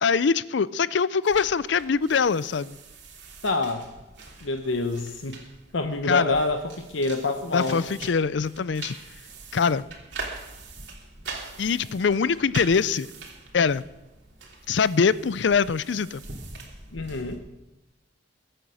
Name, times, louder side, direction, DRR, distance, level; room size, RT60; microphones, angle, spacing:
voice 1, 0.0-2.8 6.1-6.3 7.5-9.0 9.5-9.8 11.6-13.1 13.5-13.8 14.7-16.2, left 5 dB, 65° left, 18 dB, 0.5 m, -23 dB
sound 1, 1.2-17.4, right 3 dB, 65° right, 3.0 m, -43 dB
voice 2, 3.4-3.8 4.4-5.4 5.7-7.8 16.9-17.4, left 2 dB, 85° left, 6 dB, 1.0 m, -27 dB
22.5 x 9.0 x 6.4 m, 1.0 s
head